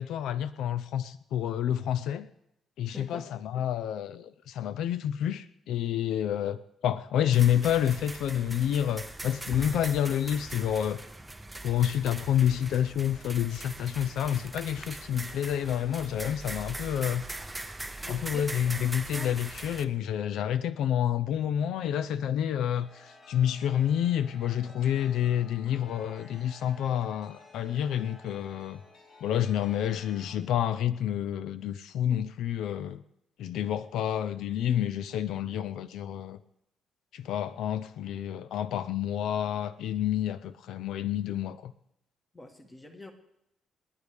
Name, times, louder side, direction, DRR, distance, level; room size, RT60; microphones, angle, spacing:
voice 1, 0.0-2.3 2.8-11.0 11.6-17.2 18.1-28.8 29.2-33.0 33.4-36.4 37.1-41.7, left 10 dB, 85° left, 0.5 m, -29 dB
voice 2, 2.9-3.3 18.0-18.5 42.3-43.1, left 2 dB, 15° left, 1.4 m, -44 dB
sound 1, 7.3-19.8, right 2 dB, 10° right, 0.6 m, -41 dB
Chime, 22.8-30.4, left 2 dB, 45° left, 3.2 m, -54 dB
28.0 x 9.7 x 3.5 m
cardioid pair, 175°, 0 cm